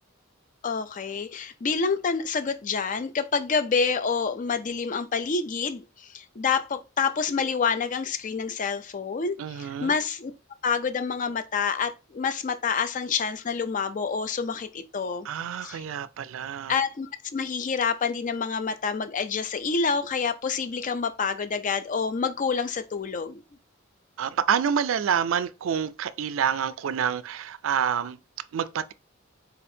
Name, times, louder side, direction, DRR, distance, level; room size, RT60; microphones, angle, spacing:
voice 1, 0.6-10.3 10.6-15.3 15.6-15.8 16.7-23.4, left 5 dB, 40° left, 0.4 m, -28 dB
voice 2, 9.4-10.0 15.2-16.7 24.2-28.2 28.5-28.9, right 8 dB, 75° right, 0.4 m, -27 dB
4.3 x 4.0 x 2.7 m
head